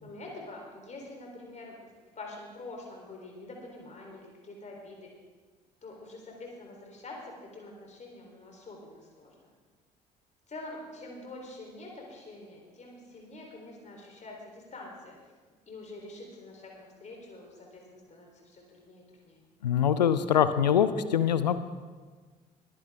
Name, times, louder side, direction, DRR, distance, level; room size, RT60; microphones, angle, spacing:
voice 1, 0.0-5.1 5.8-9.5 10.5-15.2 15.7-19.4, left 2 dB, 35° left, -1 dB, 3.5 m, -46 dB
voice 2, 19.6-21.6, left 8 dB, 80° left, 13 dB, 0.5 m, -24 dB
21.0 x 10.5 x 3.5 m, 1.4 s
figure-of-eight pair, 50°, 21 cm